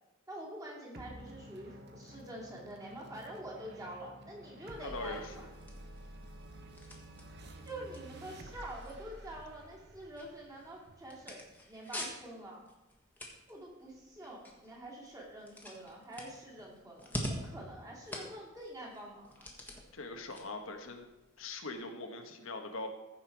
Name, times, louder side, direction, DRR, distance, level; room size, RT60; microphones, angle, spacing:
voice 1, 0.3-5.5 7.6-12.6 13.5-19.5, right 1 dB, 15° right, -3 dB, 2.6 m, -46 dB
sound 1, 0.9-11.7, right 1 dB, 55° right, 1.0 m, -51 dB
voice 2, 4.8-5.4 19.9-21.1 21.4-22.9, left 3 dB, 75° left, 4 dB, 1.2 m, -41 dB
sound 2, 4.8-21.7, equal, 10° left, 1.5 m, -48 dB
15.0 x 5.7 x 4.6 m, 1.1 s
head